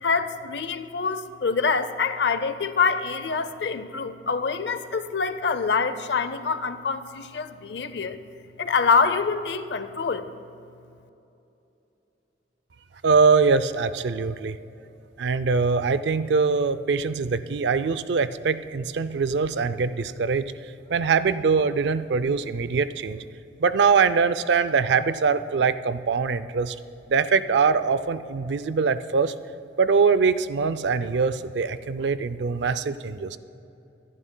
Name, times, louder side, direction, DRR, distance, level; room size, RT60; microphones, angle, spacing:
voice 1, 0.0-8.2 8.6-10.3, left 5 dB, 65° left, 12 dB, 0.6 m, -25 dB
voice 2, 13.0-14.6 15.2-20.5 20.9-23.2 23.6-26.8 27.1-29.3 29.8-33.4, right 5 dB, 70° right, 13 dB, 0.4 m, -23 dB
24.0 x 11.0 x 2.2 m, 2.8 s
head